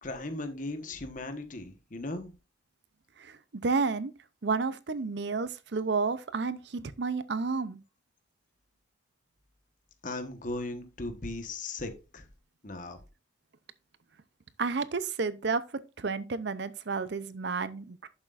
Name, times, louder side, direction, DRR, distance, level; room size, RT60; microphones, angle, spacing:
voice 1, 0.0-2.3 10.0-12.2 12.6-13.0, left 2 dB, 45° left, 1.3 m, -37 dB
voice 2, 3.2-4.1 4.4-7.8 14.6-15.6 16.0-18.1, right 4 dB, 60° right, 0.6 m, -31 dB
11.0 x 7.4 x 2.5 m
head